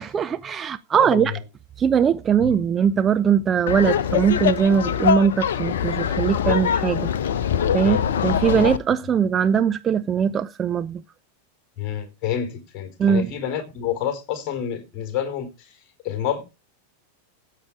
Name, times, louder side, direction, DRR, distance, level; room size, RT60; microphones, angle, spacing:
voice 1, 0.0-1.3 1.8-7.1 7.7-11.0 13.0-13.3, right 7 dB, 25° right, 0.7 m, -20 dB
voice 2, 1.0-1.4 2.4-2.5 7.8-8.0 11.8-15.8 16.0-16.4, left 9 dB, 35° left, 4.3 m, -28 dB
Laughter, 3.7-8.8, left 8 dB, 60° left, 0.9 m, -23 dB
14.0 x 8.7 x 4.8 m
figure-of-eight pair, 90°, 0 cm